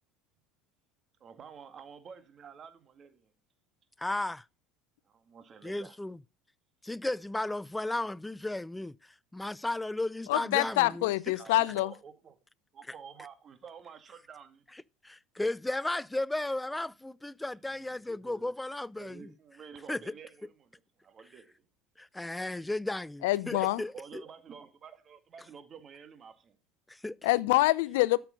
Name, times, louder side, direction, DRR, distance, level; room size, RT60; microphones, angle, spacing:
voice 1, 1.2-3.3 5.1-6.0 10.5-11.0 11.4-12.4 12.7-14.6 17.7-18.5 19.0-21.7 22.6-22.7 23.9-26.6, right 7 dB, 35° right, 2.1 m, -50 dB
voice 2, 4.0-4.4 5.6-6.2 6.8-9.0 9.3-11.1 15.0-19.3 19.9-20.1 22.0-24.2 26.9-27.2, left 2 dB, 10° left, 0.5 m, -34 dB
voice 3, 10.3-11.9 23.2-23.8 27.2-28.2, left 18 dB, 70° left, 0.6 m, -26 dB
13.0 x 7.0 x 5.2 m
hypercardioid pair, 75°, 0 cm